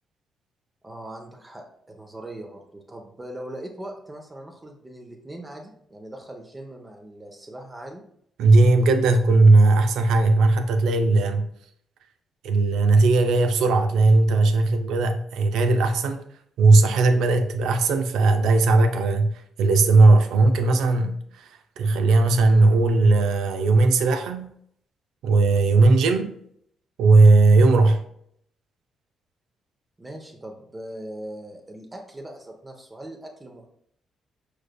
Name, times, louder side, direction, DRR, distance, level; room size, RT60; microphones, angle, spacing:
voice 1, 0.8-8.0 30.0-33.7, right 1 dB, 20° right, 0.8 m, -40 dB
voice 2, 8.4-11.5 12.4-16.2 16.6-19.3 19.6-24.5 25.2-26.3 27.0-28.0, right 3 dB, 80° right, 0.5 m, -18 dB
4.9 x 4.7 x 2.2 m
cardioid pair, 90°, 0 cm